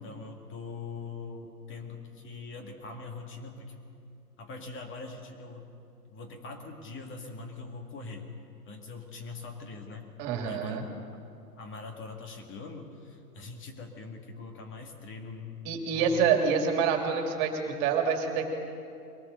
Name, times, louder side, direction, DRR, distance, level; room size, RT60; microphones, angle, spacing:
voice 1, 0.0-3.9 4.4-5.7 6.1-8.3 8.7-10.1 10.4-11.2 11.6-16.3, left 4 dB, 25° left, 3 dB, 2.1 m, -42 dB
voice 2, 10.2-10.8 15.6-18.5, right 6 dB, 40° right, 3 dB, 2.9 m, -27 dB
22.5 x 19.0 x 6.8 m, 2.6 s
figure-of-eight pair, 105°, 48 cm